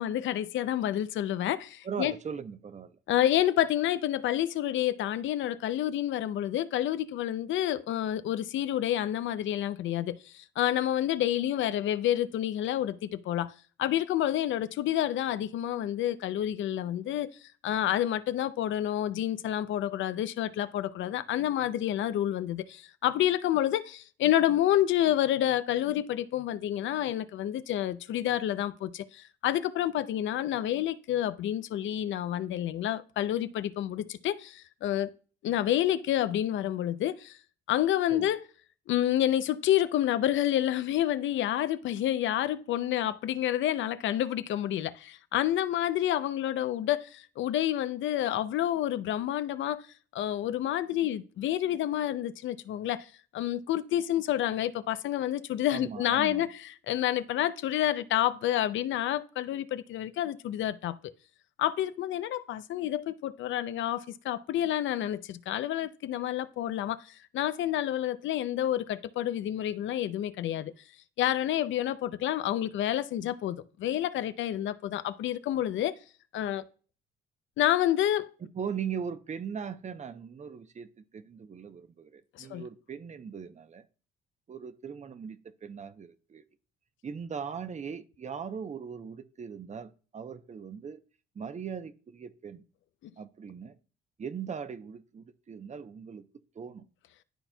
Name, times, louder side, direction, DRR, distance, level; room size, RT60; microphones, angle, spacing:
voice 1, 0.0-2.1 3.1-13.5 13.8-17.3 17.6-35.1 35.4-37.4 37.7-38.4 38.9-49.8 50.1-61.0 61.6-70.7 71.2-75.9 76.3-76.6 77.6-78.3 82.4-82.6 93.0-93.1, left 12 dB, 75° left, 0.5 m, -29 dB
voice 2, 1.8-3.0 38.1-38.3 55.7-56.5 78.4-83.8 84.5-86.4 87.0-91.0 91.3-92.6 93.2-93.8 94.2-96.3 96.5-96.9, right 7 dB, 35° right, 0.7 m, -39 dB
12.0 x 4.2 x 2.3 m
cardioid pair, 90°, 20 cm